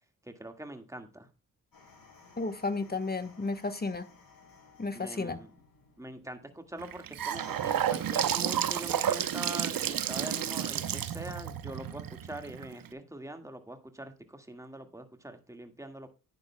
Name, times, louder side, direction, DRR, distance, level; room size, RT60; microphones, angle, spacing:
voice 1, 0.2-1.3 4.9-5.5 6.0-16.1, right 1 dB, 10° right, 1.9 m, -43 dB
sound 1, 1.7-11.4, left 3 dB, 75° left, 5.3 m, -56 dB
voice 2, 2.4-4.1 4.8-5.4, left 3 dB, 25° left, 1.4 m, -33 dB
Gurgling / Sink (filling or washing) / Bathtub (filling or washing), 6.8-12.9, right 10 dB, 75° right, 0.8 m, -31 dB
11.0 x 9.5 x 2.3 m
cardioid pair, 50°, 35 cm